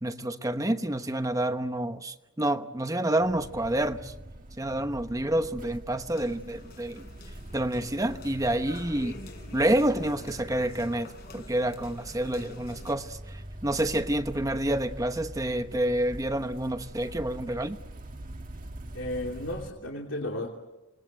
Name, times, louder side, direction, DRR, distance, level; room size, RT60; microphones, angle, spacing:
voice 1, 0.0-4.1 4.6-7.1 7.5-9.2 9.5-17.8, right 1 dB, 15° right, 1.0 m, -28 dB
sound 1, 3.2-19.7, right 1 dB, 45° right, 1.5 m, -44 dB
sound 2, 6.1-13.0, left 2 dB, 50° left, 3.9 m, -48 dB
voice 2, 18.9-20.5, left 1 dB, 80° left, 3.0 m, -33 dB
28.0 x 20.5 x 8.1 m
head